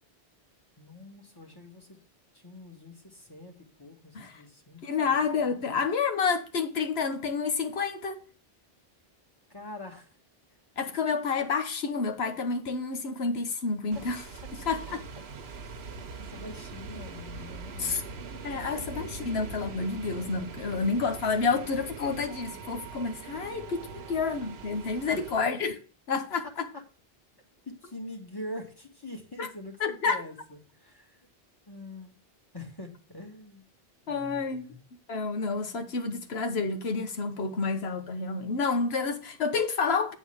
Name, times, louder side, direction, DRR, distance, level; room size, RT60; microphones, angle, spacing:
voice 1, 0.8-2.0 2.3-4.8 5.1-5.8 9.5-10.1 15.6-15.7 16.3-18.1 18.7-18.8 19.2-19.3 23.9-24.1 24.9-25.3 26.4-26.8 27.6-31.3 31.7-32.1 32.5-33.7 34.1-34.8, left 1 dB, 25° left, 1.5 m, -44 dB
voice 2, 4.8-8.2 10.8-14.2 14.6-15.0 17.8-18.0 18.4-25.8 26.1-26.7 29.4-29.5 29.8-30.2 34.1-34.6 35.1-40.1, left 4 dB, 90° left, 1.2 m, -29 dB
sound 1, 13.9-25.4, right 4 dB, 80° right, 1.1 m, -42 dB
9.0 x 3.9 x 6.3 m
omnidirectional pair, 1.0 m